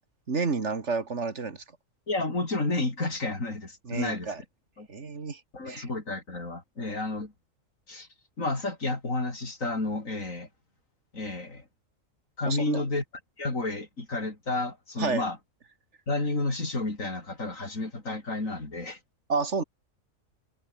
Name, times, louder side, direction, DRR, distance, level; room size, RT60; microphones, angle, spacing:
voice 1, 0.3-1.6 3.9-4.4 4.9-5.4 5.7-5.9 12.4-12.8 15.0-15.2 19.3-19.6, right 4 dB, 60° right, 2.3 m, -30 dB
voice 2, 2.1-4.3 4.8-4.9 5.5-7.3 7.9-8.1 8.4-10.5 11.1-11.6 12.4-13.0 13.4-15.4 16.1-19.0, left 2 dB, 80° left, 5.1 m, -31 dB
omnidirectional pair, 1.4 m